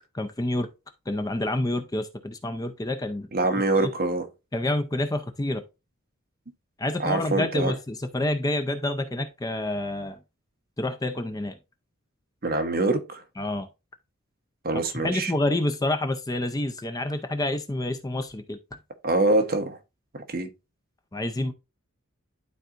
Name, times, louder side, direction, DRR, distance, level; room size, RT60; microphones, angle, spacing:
voice 1, 0.1-0.7 1.1-3.3 3.8-3.9 4.5-5.6 6.8-10.2 10.8-11.6 13.4-13.7 15.0-18.8 21.1-21.5, left 1 dB, 15° left, 0.5 m, -28 dB
voice 2, 3.3-4.3 7.0-7.7 12.4-13.2 14.6-15.3 19.0-19.8 20.1-20.5, right 2 dB, 45° right, 1.0 m, -24 dB
11.5 x 4.0 x 2.5 m
head